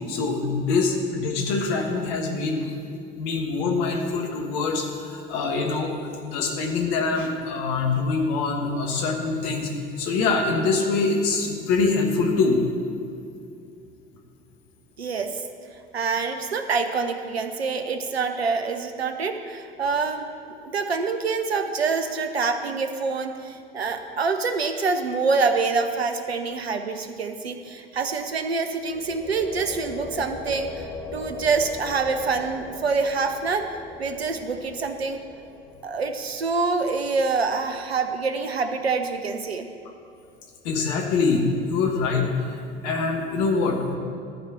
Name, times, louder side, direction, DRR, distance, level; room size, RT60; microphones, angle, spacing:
voice 1, 0.1-2.8 3.1-9.7 10.0-12.6 40.6-42.6 42.8-44.0, left 4 dB, 55° left, 2 dB, 1.5 m, -24 dB
voice 2, 15.0-15.4 15.9-20.3 20.6-33.7 34.0-35.2 35.8-39.7, right 4 dB, 85° right, 7 dB, 0.7 m, -26 dB
sound 1, 28.8-38.7, left 3 dB, 15° left, 0.9 m, -40 dB
13.0 x 4.4 x 7.1 m, 2.5 s
figure-of-eight pair, 70°, 30 cm